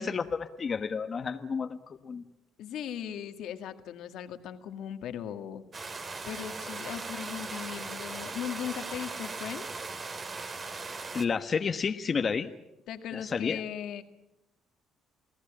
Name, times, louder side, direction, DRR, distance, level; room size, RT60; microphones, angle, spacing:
voice 1, 0.0-2.2 11.1-12.5 13.1-13.6, left 5 dB, 40° left, 6 dB, 1.2 m, -31 dB
voice 2, 2.6-5.6 6.3-9.7 12.9-14.0, left 9 dB, 75° left, 8 dB, 1.9 m, -38 dB
sound 1, 5.7-11.3, right 4 dB, 35° right, 2.8 m, -38 dB
29.0 x 18.0 x 8.8 m, 0.94 s
supercardioid pair, 80°, 0 cm